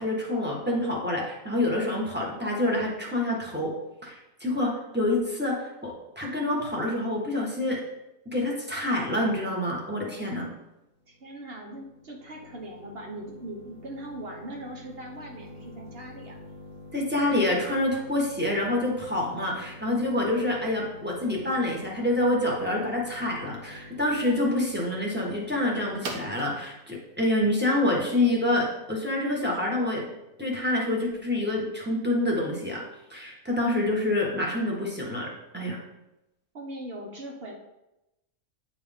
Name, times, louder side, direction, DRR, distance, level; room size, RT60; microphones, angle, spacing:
voice 1, 0.0-3.7 4.0-7.8 8.2-10.5 16.9-30.0 30.4-32.8 33.1-35.8, left 1 dB, 5° right, -3 dB, 1.5 m, -27 dB
sound 1, 10.9-28.6, equal, 75° right, 1.5 m, -46 dB
voice 2, 11.1-16.4 36.5-37.5, right 1 dB, 45° right, 0 dB, 1.3 m, -40 dB
9.1 x 4.7 x 3.7 m, 0.92 s
omnidirectional pair, 1.6 m